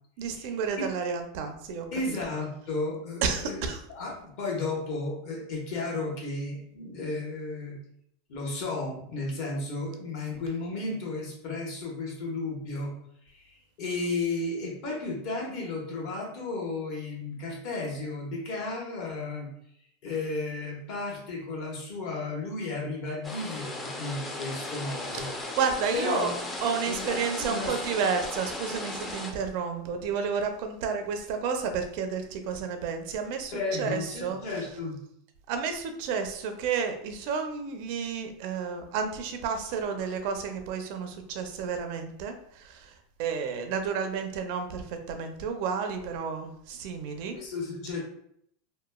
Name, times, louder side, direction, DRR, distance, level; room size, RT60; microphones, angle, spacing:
voice 1, 0.2-1.9 3.2-3.8 25.1-25.2 25.6-33.5 33.8-34.4 35.5-42.9 43.2-47.4, right 6 dB, 60° right, 6 dB, 0.4 m, -31 dB
voice 2, 1.9-7.7 8.3-12.9 13.3-19.5 20.0-25.3 25.9-26.4 26.8-27.8 33.5-35.0 47.3-48.0, left 3 dB, 55° left, -2 dB, 1.0 m, -33 dB
sound 1, 23.2-29.3, left 2 dB, 20° left, 0.4 m, -36 dB
2.9 x 2.2 x 2.2 m, 0.70 s
supercardioid pair, 135°, 0 cm